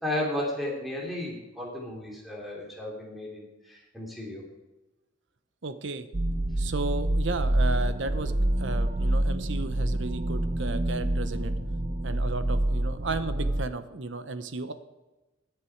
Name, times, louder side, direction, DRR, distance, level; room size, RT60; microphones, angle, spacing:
voice 1, 0.0-4.4, left 1 dB, ahead, -3 dB, 2.9 m, -34 dB
voice 2, 5.6-6.1 6.6-11.5 12.0-14.7, right 3 dB, 65° right, 10 dB, 0.9 m, -34 dB
sound 1, 6.1-13.7, right 1 dB, 40° right, 0.8 m, -27 dB
20.5 x 6.9 x 4.6 m, 1.1 s
head